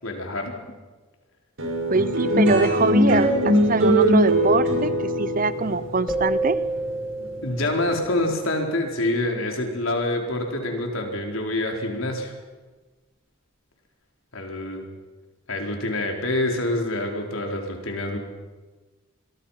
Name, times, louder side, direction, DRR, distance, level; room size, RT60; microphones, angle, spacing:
voice 1, 0.0-0.6 7.4-12.3 14.3-14.8 15.5-18.2, left 1 dB, 80° left, 2 dB, 4.4 m, -26 dB
sound 1, 1.6-8.2, equal, 75° right, 5.7 m, -21 dB
voice 2, 1.9-6.6, right 3 dB, 40° right, 15 dB, 0.8 m, -24 dB
sound 2, 6.1-8.7, right 2 dB, ahead, 1.8 m, -29 dB
26.5 x 23.0 x 5.8 m, 1.3 s
head